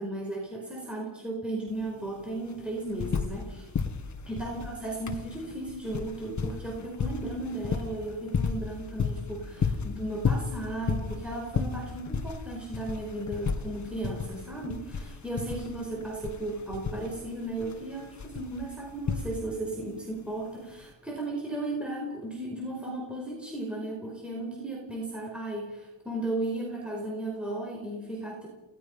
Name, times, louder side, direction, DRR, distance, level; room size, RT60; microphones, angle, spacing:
voice 1, 0.0-3.7 4.3-28.5, right 2 dB, ahead, -2 dB, 5.1 m, -35 dB
sound 1, 1.7-1.8 2.0-3.5 3.7-19.7 20.8-20.9, left 5 dB, 35° left, 1.7 m, -33 dB
29.5 x 19.0 x 5.7 m, 1.1 s
wide cardioid pair, 155°, 49 cm